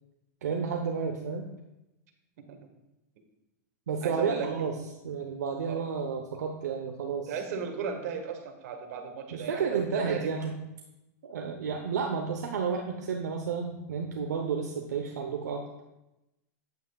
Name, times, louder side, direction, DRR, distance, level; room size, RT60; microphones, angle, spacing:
voice 1, 0.4-1.5 3.9-4.7 5.0-7.3 9.3-10.5 11.2-15.8, right 6 dB, 85° right, 3 dB, 0.9 m, -31 dB
voice 2, 4.0-4.5 5.7-5.9 7.3-10.3, right 6 dB, 65° right, 4 dB, 1.5 m, -35 dB
9.1 x 8.9 x 2.4 m, 0.95 s
hypercardioid pair, 115°, 9 cm